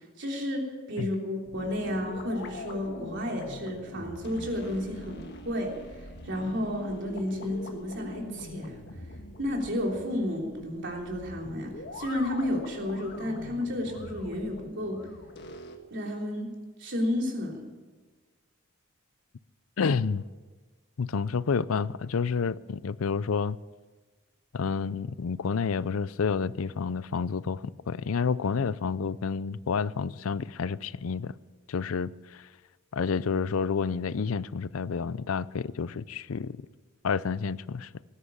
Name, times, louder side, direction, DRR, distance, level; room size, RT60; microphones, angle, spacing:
voice 1, 0.2-8.8 9.4-15.0 15.9-16.5 16.8-17.7, left 1 dB, 60° right, 3.3 m, -32 dB
sound 1, 1.4-15.8, left 1 dB, 55° left, 1.7 m, -43 dB
voice 2, 19.8-20.3 21.0-23.6 24.5-31.3 31.7-32.5 32.9-36.6 37.0-37.9, left 5 dB, 85° left, 0.5 m, -29 dB
18.5 x 10.0 x 7.3 m
head